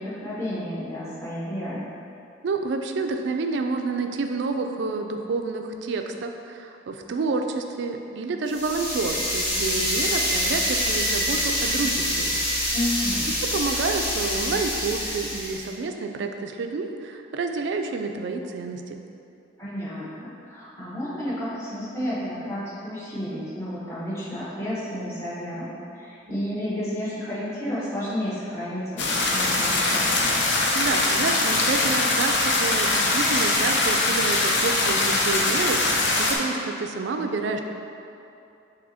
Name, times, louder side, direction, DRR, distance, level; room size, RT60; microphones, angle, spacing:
voice 1, 0.0-1.9 12.7-13.2 19.6-30.3, equal, 15° left, -10 dB, 0.9 m, -31 dB
voice 2, 2.4-12.4 13.3-19.0 30.7-37.6, right 3 dB, 65° right, 5 dB, 0.3 m, -29 dB
sound 1, 8.5-15.7, equal, 30° left, 1.4 m, -26 dB
sound 2, 29.0-36.4, left 2 dB, 70° left, 0.6 m, -22 dB
5.9 x 2.8 x 2.7 m, 2.7 s
head